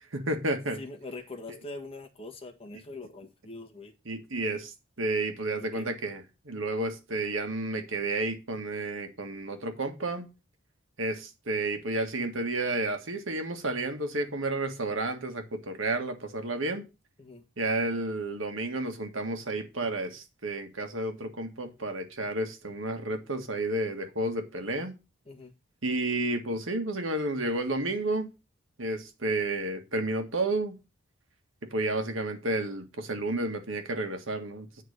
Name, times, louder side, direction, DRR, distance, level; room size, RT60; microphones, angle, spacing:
voice 1, 0.1-0.8 4.1-10.3 11.0-16.9 17.6-24.9 25.8-28.3 28.8-30.8 31.6-34.8, right 2 dB, 80° right, 1.7 m, -31 dB
voice 2, 0.8-3.9 5.6-5.9 17.2-17.4 25.3-25.5, left 2 dB, 30° left, 1.4 m, -43 dB
9.3 x 4.0 x 6.5 m
head